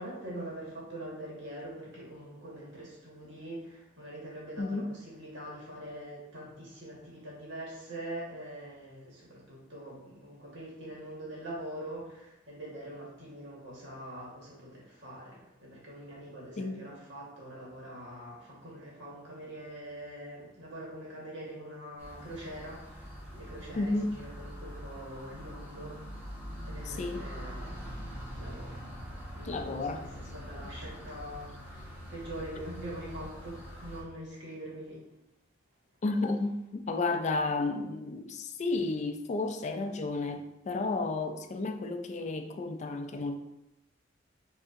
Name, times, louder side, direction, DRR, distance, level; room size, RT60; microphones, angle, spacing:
voice 1, 0.0-26.4 26.7-28.9 29.3-35.0, right 1 dB, 70° right, -5 dB, 1.5 m, -44 dB
voice 2, 4.6-4.9 16.6-16.9 23.7-24.1 26.9-27.3 29.4-30.0 36.0-43.4, left 3 dB, 35° left, 6 dB, 0.3 m, -32 dB
sound 1, 22.0-34.0, equal, 10° right, 1.2 m, -43 dB
5.0 x 2.7 x 2.5 m, 0.89 s
head